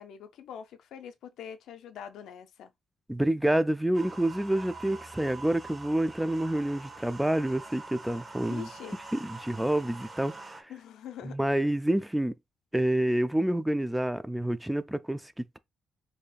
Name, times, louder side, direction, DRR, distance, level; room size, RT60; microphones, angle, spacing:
voice 1, 0.0-2.7 8.4-9.0 10.7-11.4, left 9 dB, 80° left, 0.5 m, -44 dB
voice 2, 3.1-8.7 9.1-10.7 11.2-12.3 12.7-15.6, right 1 dB, 5° right, 0.3 m, -28 dB
sound 1, 3.9-10.6, right 3 dB, 25° right, 0.9 m, -45 dB
5.0 x 2.7 x 2.3 m
cardioid pair, 90°, 0 cm